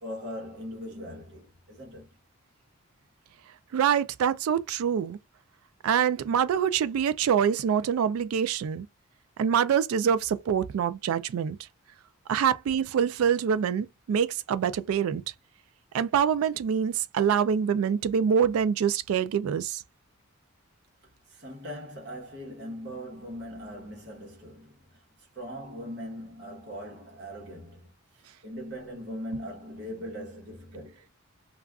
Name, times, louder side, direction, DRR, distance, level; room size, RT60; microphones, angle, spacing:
voice 1, 0.0-2.1 12.4-12.5 21.0-31.1, equal, 50° right, 1.0 m, -40 dB
voice 2, 3.7-5.2 5.8-8.9 9.4-11.6 12.3-15.2 15.9-19.8, right 8 dB, 75° right, 0.3 m, -25 dB
2.4 x 2.3 x 3.5 m
head